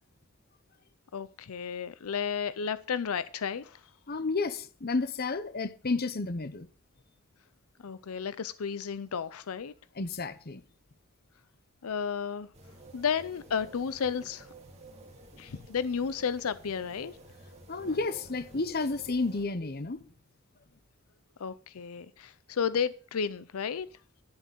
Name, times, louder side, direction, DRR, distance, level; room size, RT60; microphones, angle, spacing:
voice 1, 1.1-3.8 7.8-9.7 11.8-12.5 12.9-14.5 15.4-17.2 21.4-23.9, left 6 dB, 85° left, 0.5 m, -32 dB
voice 2, 4.1-6.7 10.0-10.6 17.7-20.0, left 3 dB, 45° left, 0.9 m, -31 dB
sound 1, 12.5-19.5, right 2 dB, 30° right, 2.1 m, -52 dB
11.0 x 7.3 x 6.8 m
head